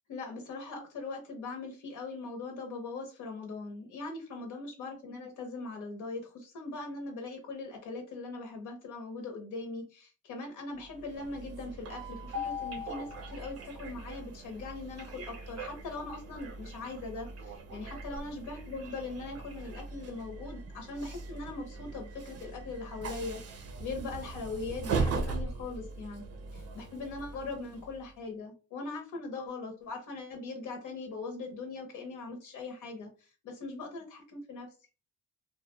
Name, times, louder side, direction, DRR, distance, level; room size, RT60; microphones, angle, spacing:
voice 1, 0.1-26.2 26.5-34.7, left 3 dB, 90° left, 3 dB, 0.7 m, -40 dB
Train, 10.8-28.1, right 3 dB, 55° right, 0.6 m, -40 dB
2.4 x 2.0 x 2.9 m, 0.34 s
cardioid pair, 90°, 30 cm